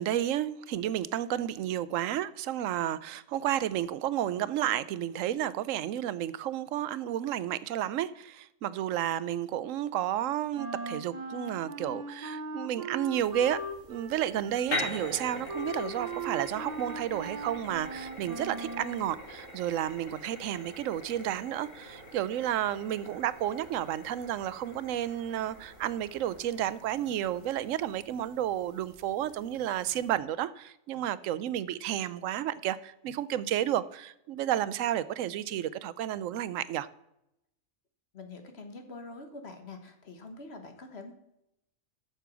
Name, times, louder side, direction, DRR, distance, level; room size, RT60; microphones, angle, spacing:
voice 1, 0.0-13.6 13.9-36.9, right 11 dB, 75° right, 0.9 m, -31 dB
Wind instrument woodwind instrument, 10.5-19.1, right 2 dB, 35° right, 1.0 m, -39 dB
sound 1, 13.2-30.1, left 1 dB, 75° left, 4.1 m, -43 dB
voice 2, 38.1-41.1, left 3 dB, 55° left, 1.5 m, -45 dB
8.2 x 6.9 x 6.1 m
omnidirectional pair, 1.4 m